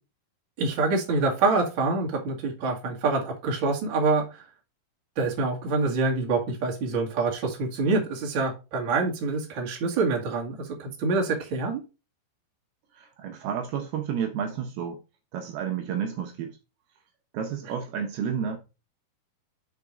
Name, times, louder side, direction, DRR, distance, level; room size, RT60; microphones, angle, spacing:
voice 1, 0.6-4.4 5.2-11.8, right 3 dB, 40° right, 2.1 m, -26 dB
voice 2, 12.9-15.0 15.3-16.6 17.3-18.6, right 7 dB, 75° right, 2.7 m, -31 dB
6.7 x 4.7 x 4.8 m
omnidirectional pair, 4.9 m